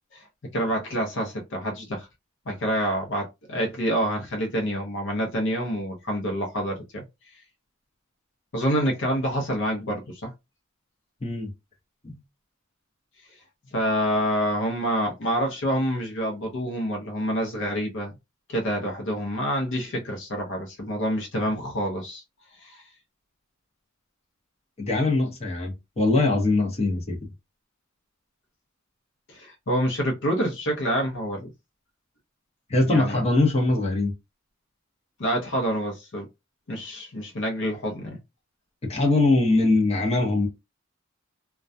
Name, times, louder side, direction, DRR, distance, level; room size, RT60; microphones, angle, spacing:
voice 1, 0.5-2.1 2.5-7.0 8.5-10.3 13.7-18.1 18.5-22.2 22.6-22.8 29.3-31.5 32.9-33.2 35.2-36.3 36.7-38.2, equal, 60° left, 0.7 m, -27 dB
voice 2, 24.8-27.2 32.7-34.1 38.9-40.5, left 2 dB, 30° left, 0.8 m, -22 dB
2.3 x 2.2 x 2.6 m
head